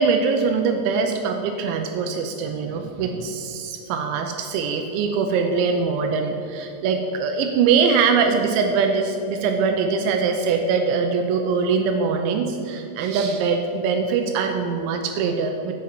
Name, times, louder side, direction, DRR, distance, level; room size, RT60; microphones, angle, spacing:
voice 1, 0.0-15.7, right 5 dB, 85° right, 4 dB, 2.9 m, -22 dB
7.9 x 6.5 x 7.6 m, 2.7 s
omnidirectional pair, 5.4 m